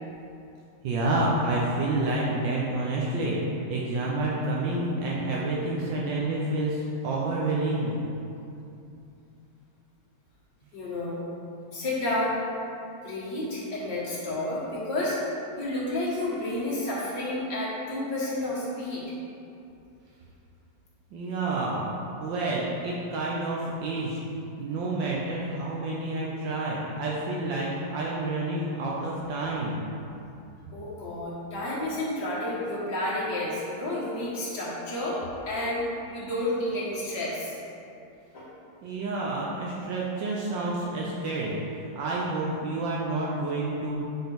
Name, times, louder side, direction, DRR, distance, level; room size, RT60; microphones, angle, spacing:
voice 1, 0.8-3.4 3.7-8.0 21.1-21.9 22.2-24.2 24.6-29.8 38.8-41.6 41.9-44.1, right 2 dB, 75° right, -4 dB, 1.4 m, -29 dB
voice 2, 10.7-11.2 11.7-12.4 13.0-15.2 15.6-19.0 30.7-35.2 35.5-37.6 38.3-38.5, left 1 dB, 55° left, -8 dB, 2.1 m, -30 dB
7.8 x 4.4 x 3.5 m, 2.7 s
omnidirectional pair, 2.1 m